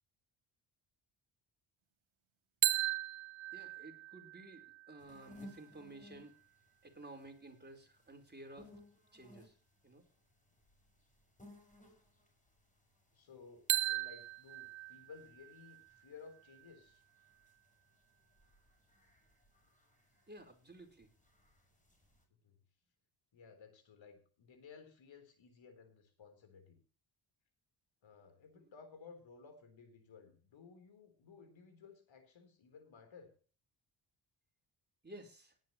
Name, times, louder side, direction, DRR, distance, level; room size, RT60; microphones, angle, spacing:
sound 1, 2.6-6.5 13.7-17.6, right 14 dB, 75° right, 1.1 m, -39 dB
voice 1, 3.5-6.4 6.8-8.7 9.1-9.5 9.8-10.0 20.3-21.1 28.5-28.7 35.0-35.5, right 2 dB, 20° right, 4 dB, 4.4 m, -54 dB
sound 2, 5.0-22.3, left 1 dB, 15° left, 6.4 m, -62 dB
voice 2, 13.1-17.0 22.3-22.6 23.3-26.8 28.0-33.3, left 5 dB, 70° left, 8 dB, 3.9 m, -57 dB
18.5 x 10.5 x 3.1 m, 0.38 s
cardioid pair, 70°, 48 cm